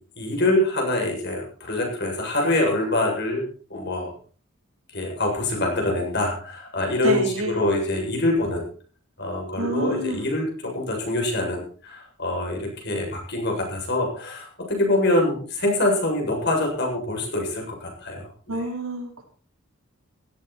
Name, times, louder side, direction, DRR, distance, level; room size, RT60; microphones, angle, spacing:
voice 1, 0.2-4.1 4.9-7.2 7.6-8.6 9.2-18.3, left 1 dB, 55° left, 1 dB, 7.6 m, -25 dB
voice 2, 7.0-7.6 9.5-10.2 18.5-19.2, right 1 dB, 90° right, 2 dB, 4.7 m, -28 dB
16.5 x 15.0 x 4.5 m, 0.40 s
head